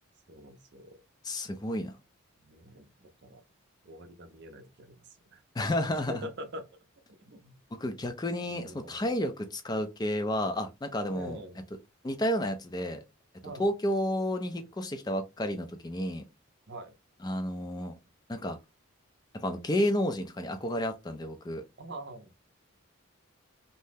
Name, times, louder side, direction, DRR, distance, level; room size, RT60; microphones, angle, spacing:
voice 1, 0.3-1.0 2.4-3.4 3.8-5.4 5.9-6.7 7.2-7.5 8.5-9.0 11.1-11.6 13.4-13.7 14.6-14.7 16.7-16.9 21.8-22.3, equal, 50° right, 0.5 m, -45 dB
voice 2, 1.2-1.9 5.6-6.2 7.7-11.4 12.0-13.0 13.6-16.2 17.2-17.9 18.3-18.6 19.3-21.6, left 1 dB, 20° left, 0.3 m, -31 dB
2.7 x 2.0 x 3.4 m
head